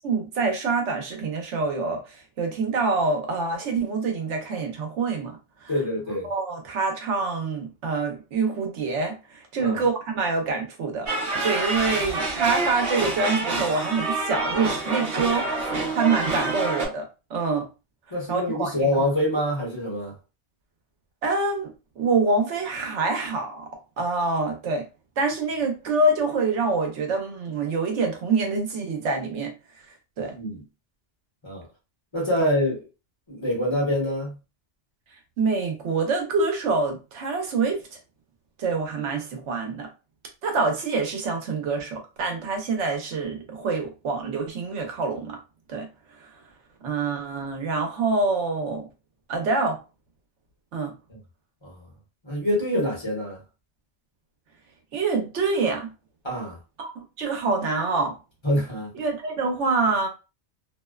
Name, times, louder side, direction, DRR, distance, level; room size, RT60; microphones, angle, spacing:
voice 1, 0.0-5.7 6.2-11.1 11.4-17.7 18.3-18.7 21.2-23.7 24.0-24.9 25.2-29.5 30.2-30.3 35.4-37.8 38.6-39.9 40.4-45.4 45.7-45.9 46.2-46.3 46.8-48.9 49.3-49.8 50.7-50.9 54.9-55.9 56.8-58.2 58.9-60.1, right 3 dB, 85° right, 1.0 m, -26 dB
voice 2, 5.7-6.3 9.6-9.8 18.1-20.1 30.3-30.6 31.4-31.7 32.1-32.9 33.3-34.4 51.6-51.8 52.2-53.4 56.2-56.6 58.4-58.9, left 1 dB, 25° left, 0.9 m, -25 dB
sound 1, 11.1-16.9, right 2 dB, 60° right, 0.9 m, -27 dB
2.6 x 2.1 x 2.3 m
omnidirectional pair, 1.2 m